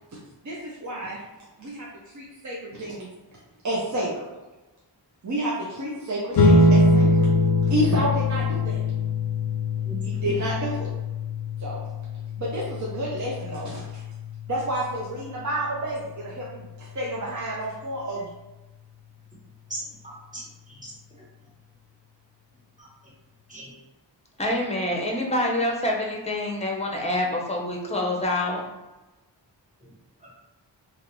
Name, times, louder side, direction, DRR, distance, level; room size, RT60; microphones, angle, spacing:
voice 1, 0.4-1.2 1.6-1.9 2.1-3.1 3.6-4.3 5.2-7.2 7.6-8.8 10.0-10.9 11.6-11.9 12.4-14.0 14.5-18.3, right 1 dB, 40° right, -5 dB, 0.6 m, -30 dB
sound 1, 6.4-17.1, left 2 dB, 55° left, 0.5 m, -24 dB
voice 2, 19.7-20.9 22.8-22.9 23.5-23.7 29.8-29.9 30.2-30.5, right 1 dB, 15° right, -5 dB, 1.1 m, -40 dB
voice 3, 24.4-28.6, left 1 dB, 15° left, -1 dB, 0.6 m, -26 dB
3.0 x 2.4 x 2.9 m, 1.1 s
wide cardioid pair, 65°, 44 cm